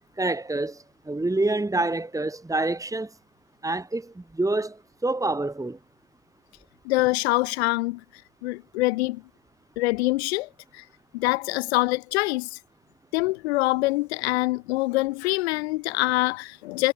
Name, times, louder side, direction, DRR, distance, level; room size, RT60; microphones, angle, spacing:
voice 1, 0.2-3.1 3.6-5.8, right 2 dB, 10° right, 2.9 m, -27 dB
voice 2, 6.8-9.2 9.8-10.9 11.1-12.6 13.1-16.9, left 21 dB, 80° left, 2.0 m, -25 dB
hypercardioid pair, 65°, 32 cm